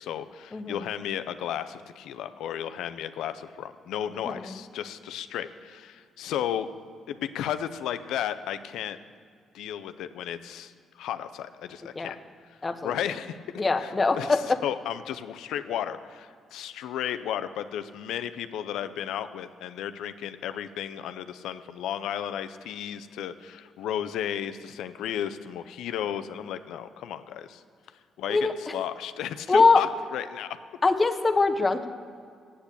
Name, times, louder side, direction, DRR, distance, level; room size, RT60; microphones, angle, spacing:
voice 1, 0.0-6.7 7.1-9.0 9.5-12.2 12.8-27.6 28.2-30.5, left 10 dB, 85° left, 11 dB, 0.5 m, -34 dB
voice 2, 0.5-0.8 4.1-4.6 12.0-12.1 12.6-12.9 13.6-14.6 28.3-28.5 29.5-29.8 30.8-31.9, left 3 dB, 25° left, 7 dB, 0.8 m, -23 dB
8.6 x 8.1 x 8.3 m, 2.2 s
cardioid pair, 90°, 0 cm